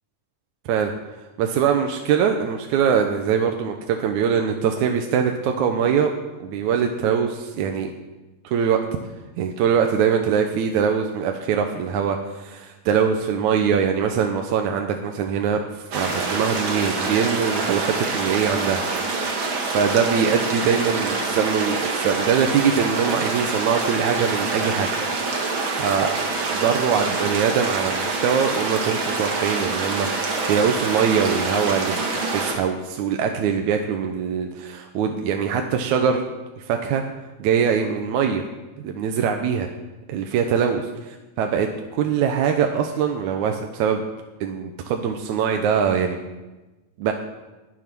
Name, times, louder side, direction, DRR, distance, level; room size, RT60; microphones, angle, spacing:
voice 1, 1.4-6.1 6.4-7.9 8.4-8.8 9.4-18.8 19.6-24.9 25.8-26.1 26.5-32.0 32.3-36.2 36.7-37.0 37.4-38.4 38.8-39.7 40.1-40.8 41.4-44.0 44.4-46.2 47.0-47.1, right 7 dB, 80° right, 4 dB, 2.2 m, -22 dB
sound 1, 15.9-32.6, right 3 dB, 45° right, 2.2 m, -26 dB
19.5 x 7.3 x 6.0 m, 1.1 s
omnidirectional pair, 3.4 m